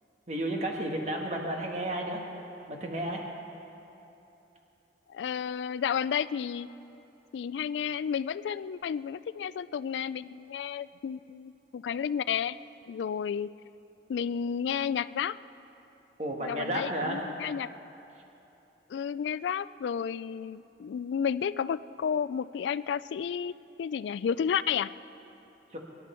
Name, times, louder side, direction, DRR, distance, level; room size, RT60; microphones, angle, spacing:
voice 1, 0.3-2.2 2.7-3.2 16.2-17.3 25.7-25.8, right 1 dB, 40° right, 1 dB, 1.5 m, -32 dB
voice 2, 5.1-6.7 7.3-12.6 12.9-13.5 14.1-15.4 16.4-17.7 18.9-23.5 23.8-24.9, left 7 dB, 85° left, 17 dB, 0.3 m, -32 dB
23.0 x 11.0 x 4.4 m, 2.9 s
head